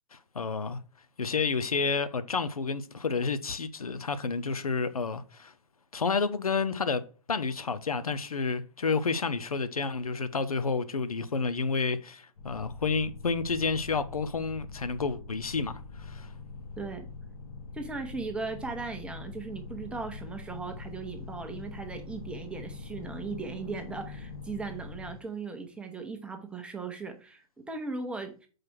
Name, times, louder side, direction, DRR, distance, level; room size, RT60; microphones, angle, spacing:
voice 1, 0.1-0.8 1.2-5.5 5.9-7.0 7.3-15.7 16.0-16.3, left 4 dB, 75° left, 0.7 m, -30 dB
sound 1, 12.4-25.1, left 4 dB, 50° left, 1.6 m, -43 dB
voice 2, 17.7-28.5, right 4 dB, 5° right, 0.9 m, -38 dB
5.9 x 4.8 x 4.5 m
figure-of-eight pair, 115°, 19 cm